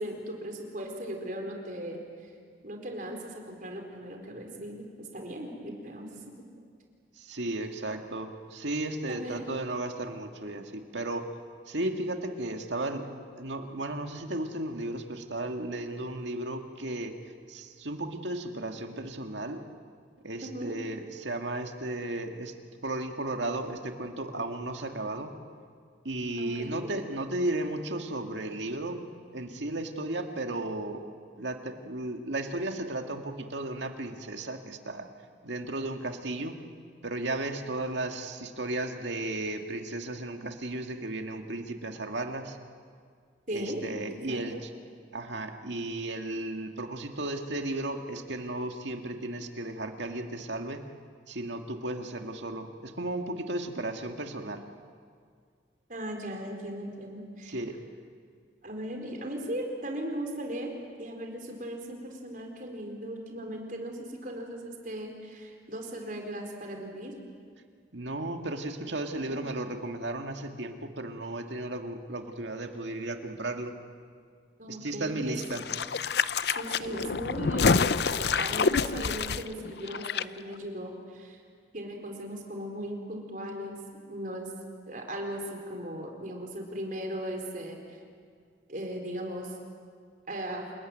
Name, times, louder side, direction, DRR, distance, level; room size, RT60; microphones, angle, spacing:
voice 1, 0.0-2.3 2.6-6.4 9.0-9.5 20.4-20.8 26.4-26.9 43.5-43.8 44.3-44.6 55.9-57.6 58.6-60.7 61.0-67.1 69.2-69.4 74.6-75.4 76.5-81.4 81.7-83.8 84.1-84.5 84.9-88.0 88.7-89.6 90.3-90.7, right 1 dB, 45° right, 2 dB, 4.4 m, -38 dB
voice 2, 7.2-11.3 11.7-13.1 13.4-17.1 17.5-19.6 20.2-22.6 22.8-25.3 26.0-29.1 29.3-31.0 31.4-35.1 35.4-36.6 37.0-42.6 43.5-44.7 45.1-50.8 51.3-54.6 57.5-57.8 67.9-73.7 74.7-75.6, right 2 dB, 80° right, 5 dB, 2.1 m, -34 dB
sound 1, 75.4-80.2 80.5-80.6, left 5 dB, 60° left, 0.6 m, -27 dB
28.5 x 20.5 x 9.2 m, 2.1 s
head